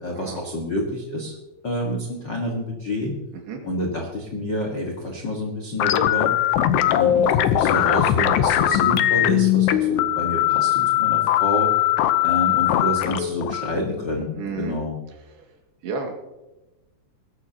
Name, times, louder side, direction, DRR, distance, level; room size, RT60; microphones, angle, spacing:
voice 1, 0.0-1.3 1.6-3.2 3.6-6.3 6.8-11.7 12.2-14.3 14.6-15.0, left 1 dB, 65° left, 0 dB, 1.1 m, -28 dB
sound 1, 5.8-14.7, left 12 dB, 85° left, 2.8 m, -20 dB
voice 2, 14.4-14.8 15.1-15.6 15.8-16.2, right 5 dB, 75° right, 2 dB, 4.0 m, -33 dB
22.0 x 12.0 x 2.9 m, 1.0 s
omnidirectional pair, 4.9 m